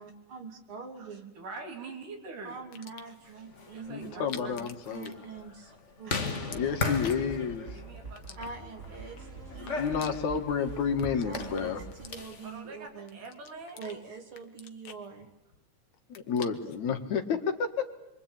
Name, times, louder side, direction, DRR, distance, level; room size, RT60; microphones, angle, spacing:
voice 1, 0.0-1.3 2.4-6.6 8.4-9.8 11.3-13.2 13.8-15.3, right 4 dB, 45° right, 4 dB, 3.4 m, -44 dB
voice 2, 1.4-2.6 3.7-4.7 6.8-7.1 7.7-9.3 12.4-14.0, right 3 dB, 85° right, 2 dB, 5.1 m, -44 dB
sound 1, 2.6-3.3 4.1-5.8 6.0-7.4 8.2-9.0 9.5-10.6 10.9-12.6 13.1-14.0 14.3-15.6 15.9-16.8, left 8 dB, 50° left, 1.7 m, -48 dB
sound 2, 3.4-12.5, left 4 dB, 25° left, 1.8 m, -38 dB
voice 3, 3.9-5.1 6.5-7.8 9.7-11.8 16.1-17.9, left 6 dB, 65° left, 6 dB, 3.1 m, -30 dB
sound 3, 6.5-12.1, right 4 dB, 25° right, 2.3 m, -46 dB
28.0 x 23.5 x 8.9 m, 0.89 s
omnidirectional pair, 3.6 m